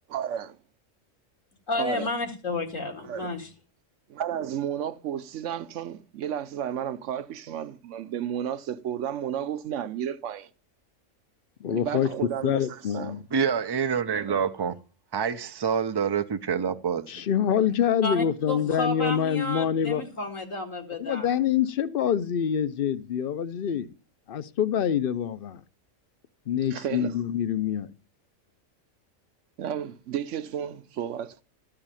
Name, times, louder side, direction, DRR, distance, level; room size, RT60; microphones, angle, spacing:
voice 1, 0.1-0.5 1.8-2.1 3.0-3.3 4.1-10.5 11.7-13.2 14.1-14.5 26.7-27.1 29.6-31.4, right 9 dB, 65° right, 1.0 m, -32 dB
voice 2, 1.7-3.5 17.7-21.3, left 2 dB, 75° left, 2.4 m, -32 dB
voice 3, 11.6-12.1 12.4-13.3 17.1-20.0 21.0-23.9 24.3-25.6 26.5-27.9, left 9 dB, 50° left, 0.8 m, -26 dB
voice 4, 13.3-14.7 15.1-17.2, right 7 dB, 30° right, 0.4 m, -27 dB
13.5 x 4.8 x 8.9 m
omnidirectional pair, 1.4 m